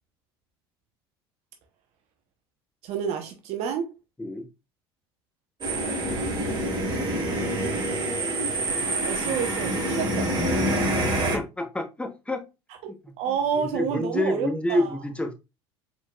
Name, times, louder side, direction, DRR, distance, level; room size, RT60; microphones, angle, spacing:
voice 1, 2.8-3.9 6.9-7.3 9.0-10.7 12.8-12.9 13.2-15.0, right 7 dB, 55° right, 0.9 m, -30 dB
sound 1, 5.6-11.4, right 1 dB, 35° right, 2.1 m, -26 dB
voice 2, 11.0-12.4 12.9-13.1 13.6-15.3, left 1 dB, 10° left, 1.0 m, -28 dB
4.6 x 4.0 x 2.3 m
hypercardioid pair, 70°, 13 cm